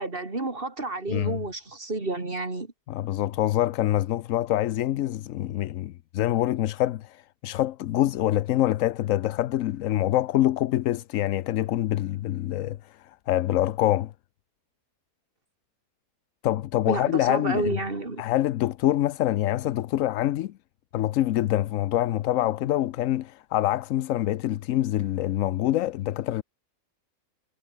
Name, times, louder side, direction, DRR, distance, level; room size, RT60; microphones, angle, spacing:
voice 1, 0.0-2.7 16.9-18.2, right 2 dB, 35° right, 3.6 m, -30 dB
voice 2, 1.1-1.4 2.9-14.1 16.4-17.7 18.2-20.5 20.9-26.4, left 13 dB, 70° left, 0.9 m, -25 dB
omnidirectional pair, 1.6 m